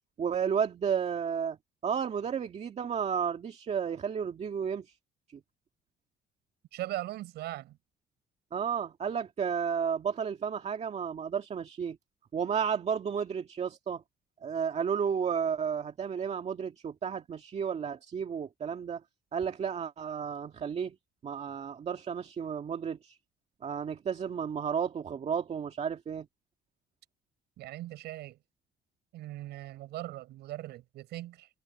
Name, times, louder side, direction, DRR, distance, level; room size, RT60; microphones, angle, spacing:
voice 1, 0.2-1.6 1.8-4.9 5.3-5.4 8.5-12.0 12.3-14.0 14.4-19.0 19.3-20.9 21.2-23.2 23.6-26.3, right 7 dB, 40° right, 2.2 m, -32 dB
voice 2, 6.7-7.8 27.6-28.4 29.1-31.5, right 15 dB, 80° right, 6.5 m, -39 dB
cardioid pair, 110°, 17 cm